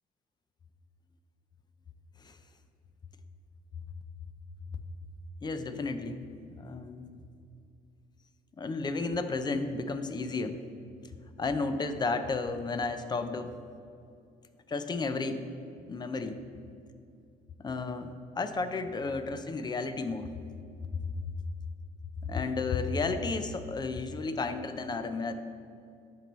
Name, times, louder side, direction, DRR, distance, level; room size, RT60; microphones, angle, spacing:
voice 1, 5.4-6.2 6.6-7.1 8.6-10.6 11.4-13.5 14.7-15.5 15.9-16.4 17.6-20.3 20.9-21.0 22.2-25.3, left 3 dB, 25° left, 9 dB, 0.5 m, -32 dB
12.0 x 4.5 x 3.1 m, 2.5 s
cardioid pair, 110°, 17 cm